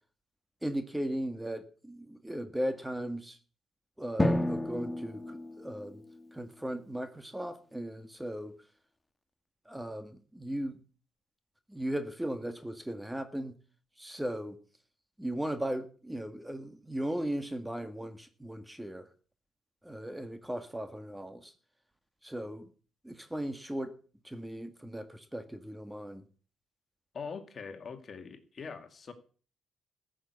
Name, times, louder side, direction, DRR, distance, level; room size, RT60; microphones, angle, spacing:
voice 1, 0.6-3.4 4.0-6.0 6.3-8.5 9.6-10.8 11.7-13.5 14.0-14.6 15.2-19.1 19.8-21.5 22.2-22.7 23.0-23.9 24.2-26.2, right 1 dB, 5° right, 9 dB, 1.6 m, -37 dB
Drum, 4.2-6.7, left 1 dB, 15° left, 1.3 m, -32 dB
voice 2, 27.1-29.1, left 5 dB, 45° left, 7 dB, 2.2 m, -42 dB
14.5 x 6.6 x 8.4 m, 0.40 s
cardioid pair, 90°, 0 cm